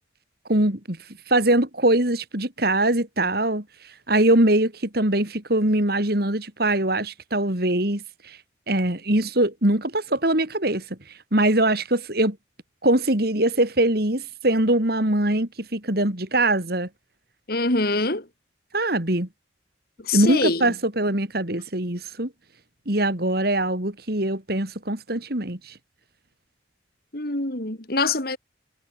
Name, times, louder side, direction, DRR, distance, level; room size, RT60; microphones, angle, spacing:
voice 1, 0.5-1.0 1.3-3.6 4.1-8.4 8.7-10.8 11.3-12.4 12.8-16.9 18.7-19.3 20.1-22.3 22.9-25.7, right 1 dB, 55° right, 3.3 m, -22 dB
voice 2, 17.5-18.3 20.0-20.7 27.1-28.4, left 3 dB, 55° left, 3.7 m, -24 dB
head